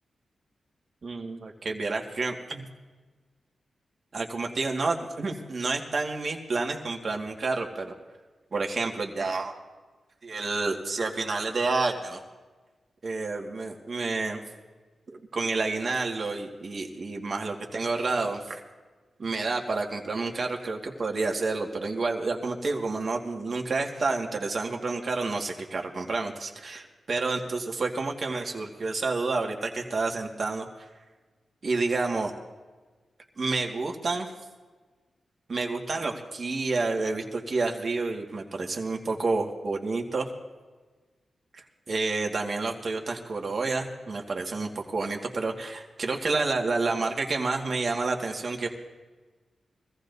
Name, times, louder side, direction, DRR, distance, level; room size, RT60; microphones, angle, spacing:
voice 1, 1.0-2.7 4.1-7.9 8.5-9.6 10.2-12.2 13.0-14.4 15.1-18.6 19.2-30.7 31.6-32.3 33.4-34.3 35.5-40.3 41.5-48.7, right 3 dB, 60° right, 2 dB, 1.8 m, -29 dB
23.5 x 15.0 x 2.7 m, 1.3 s
cardioid pair, 55°, 0 cm